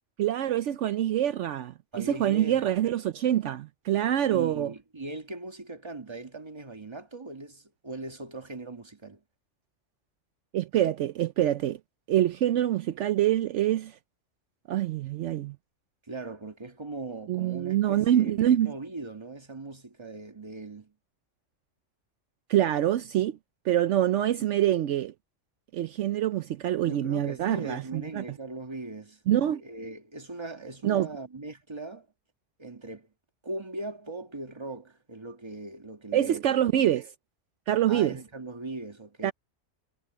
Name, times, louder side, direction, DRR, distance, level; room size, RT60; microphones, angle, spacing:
voice 1, 0.2-4.7 10.5-11.8 12.1-14.0 14.7-15.6 17.3-18.7 22.5-23.4 23.6-25.1 25.7-28.2 29.3-29.6 30.8-31.1 36.1-37.1 37.7-38.2 39.2-39.3, right 12 dB, 75° right, 0.9 m, -25 dB
voice 2, 1.9-2.8 4.3-9.2 16.0-20.9 26.9-29.2 29.6-32.1 32.6-33.1 33.4-36.4 37.9-39.3, right 2 dB, 20° right, 1.6 m, -40 dB
omnidirectional pair, 1.3 m